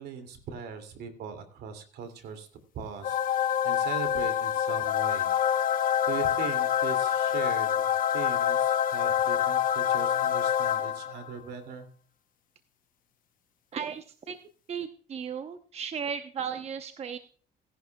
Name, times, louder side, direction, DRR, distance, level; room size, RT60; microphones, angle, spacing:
voice 1, 0.0-2.5 2.7-5.3 5.7-11.9, right 6 dB, 70° right, 8 dB, 2.6 m, -40 dB
sound 1, 3.0-11.3, left 9 dB, 55° left, 0.8 m, -26 dB
voice 2, 13.7-14.4 14.7-17.2, right 7 dB, 40° right, 9 dB, 0.8 m, -35 dB
17.0 x 11.0 x 2.3 m, 0.40 s
cardioid pair, 110°, 17 cm